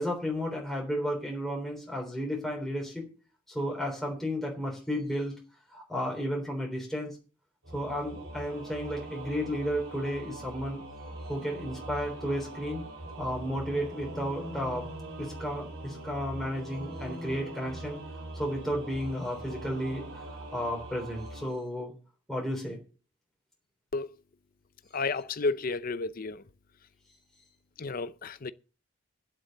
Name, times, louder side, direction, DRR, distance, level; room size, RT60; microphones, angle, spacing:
voice 1, 0.0-3.1 3.5-5.3 5.7-7.2 7.7-10.8 11.3-12.8 13.2-14.9 15.2-18.0 18.4-21.9 22.3-22.8, equal, ahead, 3.5 m, -33 dB
Singing / Musical instrument, 7.6-21.5, right 1 dB, 65° right, 3.8 m, -42 dB
voice 2, 24.9-26.4 27.8-28.5, left 3 dB, 40° left, 0.5 m, -31 dB
9.0 x 7.9 x 7.8 m
head